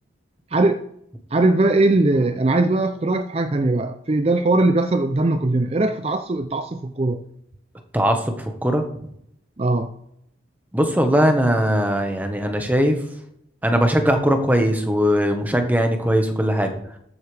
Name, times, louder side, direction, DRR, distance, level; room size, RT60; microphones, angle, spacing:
voice 1, 1.3-7.3 9.6-9.9, right 2 dB, 30° right, 0.5 m, -20 dB
voice 2, 7.9-8.8 10.7-13.0 13.6-16.8, equal, 10° right, 1.3 m, -20 dB
13.5 x 7.9 x 3.4 m
head